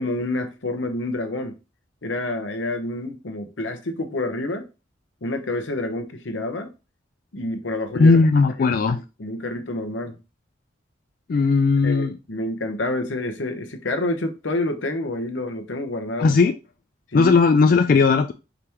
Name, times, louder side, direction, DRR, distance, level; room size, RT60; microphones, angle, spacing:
voice 1, 0.0-1.5 2.0-4.7 5.2-6.7 7.3-8.2 8.6-10.2 11.8-16.4 17.1-17.3, left 2 dB, 85° left, 0.9 m, -28 dB
voice 2, 8.0-9.0 11.3-12.2 16.2-16.5 17.1-18.3, left 4 dB, 50° left, 0.3 m, -17 dB
5.0 x 3.5 x 2.9 m
head